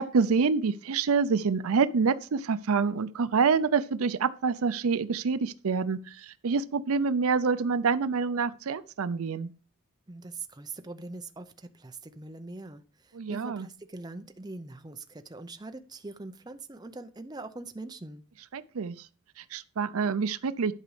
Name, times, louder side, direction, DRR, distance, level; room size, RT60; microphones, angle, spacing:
voice 1, 0.0-9.5 13.1-13.7 18.5-19.1 19.4-20.7, right 5 dB, 75° right, 0.5 m, -27 dB
voice 2, 10.1-12.8 13.3-18.2, right 3 dB, 20° right, 0.6 m, -42 dB
11.0 x 5.2 x 4.8 m
head